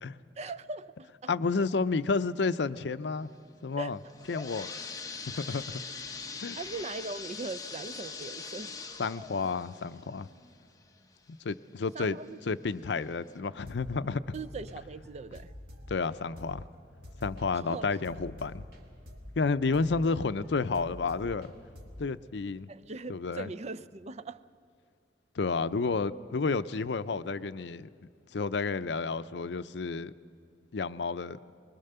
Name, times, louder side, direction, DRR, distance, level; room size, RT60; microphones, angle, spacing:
voice 1, 0.4-1.3 3.8-3.9 6.6-8.8 11.9-12.4 14.3-15.5 17.5-17.9 22.7-24.4, right 3 dB, 40° right, 14 dB, 0.5 m, -40 dB
voice 2, 1.3-3.3 3.6-4.0 4.3-4.7 5.3-5.8 6.4-6.6 9.0-10.3 11.3-12.2 12.5-14.2 15.9-16.7 17.2-18.7 19.3-21.5 22.0-22.7 23.1-23.5 25.3-27.9 28.3-30.1 30.7-31.4, left 4 dB, 70° left, 14 dB, 0.6 m, -31 dB
sound 1, 3.9-11.5 12.0-12.1 12.8-12.9 13.3-13.4, left 4 dB, 20° left, 1.1 m, -42 dB
sound 2, 13.6-22.0, left 1 dB, 65° right, 2.4 m, -48 dB
23.5 x 21.0 x 6.8 m, 2.3 s
head